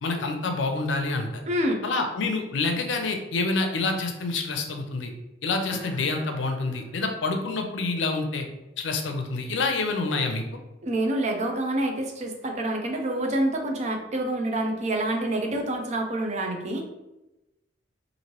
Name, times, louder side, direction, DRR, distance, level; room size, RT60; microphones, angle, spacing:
voice 1, 0.0-1.4 1.8-5.1 5.4-8.5 8.8-10.4, left 3 dB, 90° left, 5 dB, 0.5 m, -27 dB
voice 2, 1.5-1.9 10.8-16.8, right 1 dB, 40° right, 3 dB, 0.5 m, -27 dB
sound 1, 5.7-7.8, equal, 10° right, 0.9 m, -46 dB
3.0 x 2.6 x 3.0 m, 0.96 s
head